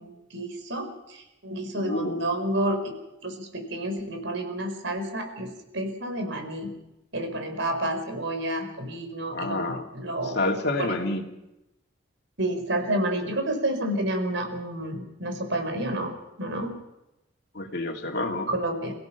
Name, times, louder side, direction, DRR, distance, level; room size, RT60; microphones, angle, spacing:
voice 1, 0.0-2.9 3.2-6.7 7.1-10.4 10.8-11.0 12.4-16.1 16.4-16.7 18.5-18.9, right 1 dB, 70° right, 5 dB, 5.0 m, -30 dB
voice 2, 1.7-2.3 9.3-9.8 10.2-11.2 17.5-18.5, left 2 dB, 55° left, 3 dB, 2.6 m, -28 dB
29.5 x 17.0 x 5.9 m, 0.92 s
head